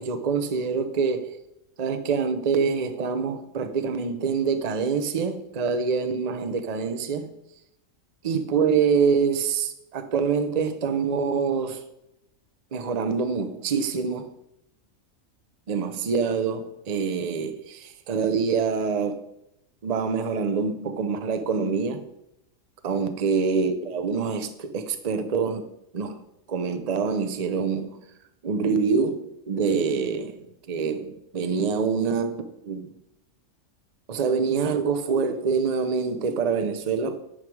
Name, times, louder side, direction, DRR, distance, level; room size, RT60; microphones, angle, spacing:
voice 1, 0.0-1.4 1.8-7.3 8.2-11.8 12.7-14.3 15.7-19.2 19.8-22.0 22.8-25.7 25.9-26.2 26.5-28.0 28.4-30.4 30.7-32.9 34.1-37.2, right 5 dB, 40° right, 0.6 m, -25 dB
9.8 x 5.4 x 4.7 m
omnidirectional pair, 1.5 m